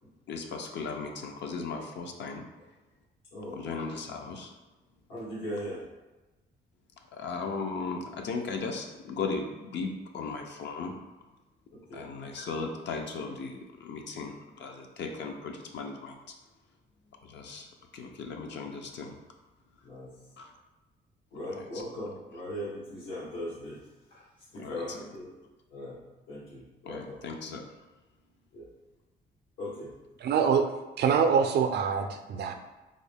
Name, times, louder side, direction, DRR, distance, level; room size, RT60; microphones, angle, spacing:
voice 1, 0.3-2.5 3.5-4.5 7.1-11.0 11.9-16.2 17.2-17.7 17.9-19.2 20.4-20.5 21.6-21.8 24.6-25.0 26.9-27.7, left 4 dB, 65° left, 2 dB, 0.5 m, -37 dB
voice 2, 5.1-5.8 11.7-12.1 19.8-20.1 21.3-23.8 24.5-25.3 25.7-26.0 26.3-27.2 28.5-28.7 29.6-29.9, left 1 dB, 85° left, -10 dB, 1.4 m, -39 dB
voice 3, 30.2-30.6 31.0-32.5, right 6 dB, 55° right, 6 dB, 0.4 m, -24 dB
3.7 x 2.1 x 3.4 m, 1.1 s
cardioid pair, 90°, 20 cm